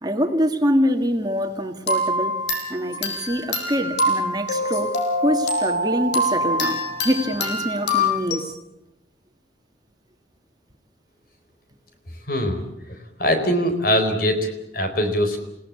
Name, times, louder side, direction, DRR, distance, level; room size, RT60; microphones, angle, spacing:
voice 1, 0.0-2.3 2.7-8.4, equal, 20° right, 4 dB, 1.9 m, -24 dB
sound 1, 1.9-8.4, left 1 dB, 70° left, 5.4 m, -24 dB
voice 2, 12.3-12.6 13.2-14.5 14.7-15.4, equal, 50° left, 7 dB, 4.3 m, -21 dB
28.0 x 18.0 x 8.4 m, 0.87 s
head